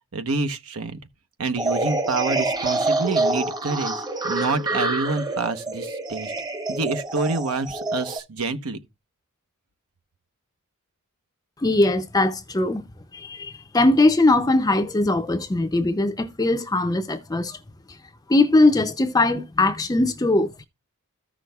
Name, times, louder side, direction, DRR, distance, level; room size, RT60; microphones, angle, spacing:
voice 1, 0.1-1.0 1.4-4.0 4.3-6.3 6.7-8.8, right 3 dB, 85° right, 1.0 m, -27 dB
sound 1, 1.6-8.2, right 2 dB, 20° right, 0.9 m, -26 dB
voice 2, 11.6-12.9 13.1-17.6 18.3-20.7, left 2 dB, 15° left, 0.5 m, -20 dB
14.5 x 6.1 x 2.3 m
head